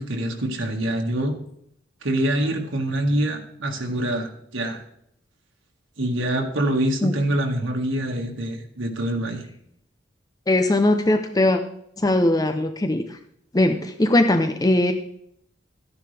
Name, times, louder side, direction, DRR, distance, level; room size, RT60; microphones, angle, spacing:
voice 1, 0.0-1.4 2.0-4.8 6.0-9.4, right 1 dB, 85° right, 2 dB, 1.9 m, -25 dB
voice 2, 10.5-11.6 12.0-13.2 13.5-14.9, left 1 dB, 20° left, 6 dB, 0.6 m, -20 dB
13.0 x 10.0 x 3.4 m, 0.72 s
head